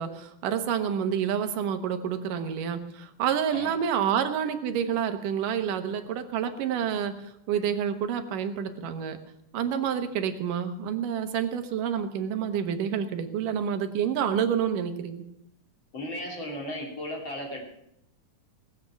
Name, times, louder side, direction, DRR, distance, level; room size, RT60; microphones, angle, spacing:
voice 1, 0.0-7.1 7.5-9.2 9.5-15.2, right 8 dB, 85° right, 7 dB, 2.8 m, -28 dB
voice 2, 15.9-17.6, left 1 dB, 35° left, 0 dB, 3.8 m, -35 dB
19.5 x 7.9 x 7.1 m, 0.80 s
omnidirectional pair, 3.7 m